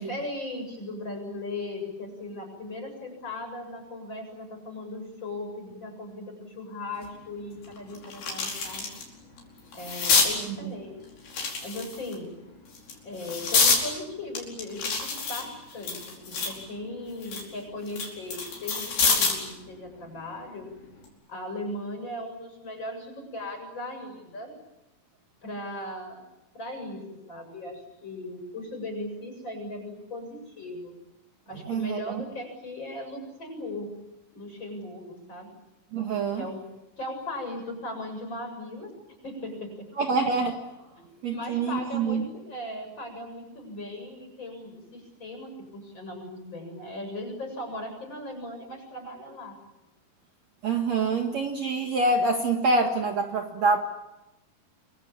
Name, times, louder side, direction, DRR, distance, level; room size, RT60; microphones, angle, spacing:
voice 1, 0.0-8.9 9.7-11.0 11.6-12.3 13.0-20.7 21.3-24.5 25.4-26.3 26.5-30.9 31.5-33.9 34.3-35.6 36.3-36.7 37.0-38.9 39.2-39.9 41.0-49.6, left 1 dB, 30° left, 4 dB, 8.3 m, -38 dB
sound 1, 7.0-7.1 7.6-9.0 9.4-10.3 11.3-12.1 12.7-13.8 14.4-16.6 17.0-19.5 20.8-21.1, left 4 dB, 85° left, 6.8 m, -27 dB
voice 2, 31.6-32.2 35.9-36.5 39.9-40.6 41.2-42.2 50.6-53.8, right 3 dB, 50° right, 3 dB, 2.7 m, -26 dB
29.0 x 22.5 x 8.8 m, 0.97 s
omnidirectional pair, 4.3 m